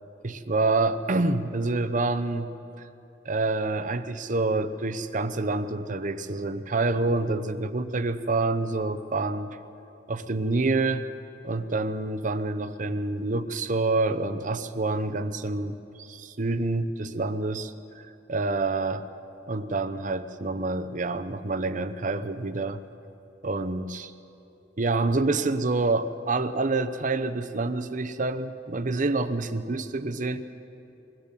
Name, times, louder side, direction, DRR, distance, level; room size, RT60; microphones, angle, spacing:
voice 1, 0.2-2.5 3.2-9.6 10.1-11.1 11.4-19.0 19.5-22.8 23.4-24.1 24.8-30.5, right 3 dB, 45° right, 11 dB, 0.8 m, -27 dB
22.0 x 17.0 x 7.5 m, 2.9 s
head